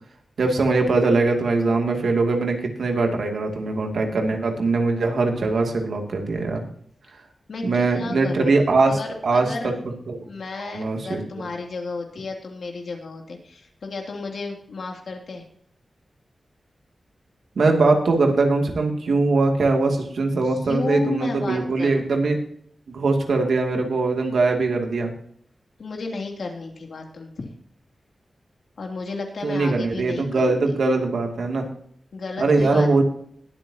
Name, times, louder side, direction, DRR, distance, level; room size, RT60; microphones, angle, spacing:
voice 1, 0.4-6.6 7.6-9.0 9.2-9.5 10.1-10.2 10.6-11.2 17.6-22.4 22.9-25.1 29.4-31.7 32.4-33.0, right 3 dB, 80° right, 3 dB, 2.5 m, -21 dB
voice 2, 7.5-8.6 8.9-15.4 20.4-22.0 25.8-27.5 28.8-30.8 32.1-33.0, left 3 dB, 70° left, 1 dB, 2.8 m, -33 dB
20.5 x 8.5 x 2.9 m, 0.63 s
wide cardioid pair, 125°, 0 cm